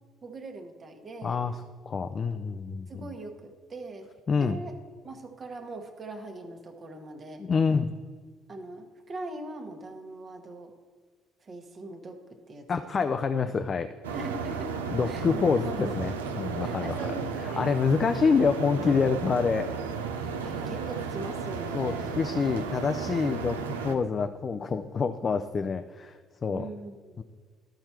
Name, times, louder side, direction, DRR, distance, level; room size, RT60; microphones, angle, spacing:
voice 1, 0.2-1.4 2.9-4.1 4.4-4.7 5.0-7.5 8.5-10.7 11.4-12.9 14.1-14.8 15.0-15.9 16.6-17.7 20.2-22.1 26.5-27.2, right 2 dB, 40° right, 5 dB, 1.2 m, -41 dB
voice 2, 1.2-1.6 1.9-3.1 4.3-4.6 7.4-7.9 12.7-13.9 14.9-17.0 17.4-19.7 21.7-26.7 27.2-27.3, left 5 dB, 40° left, 9 dB, 0.4 m, -27 dB
sound 1, 14.0-23.9, right 5 dB, 85° right, 0.5 m, -34 dB
13.0 x 4.4 x 4.4 m, 1.5 s
hypercardioid pair, 50°, 0 cm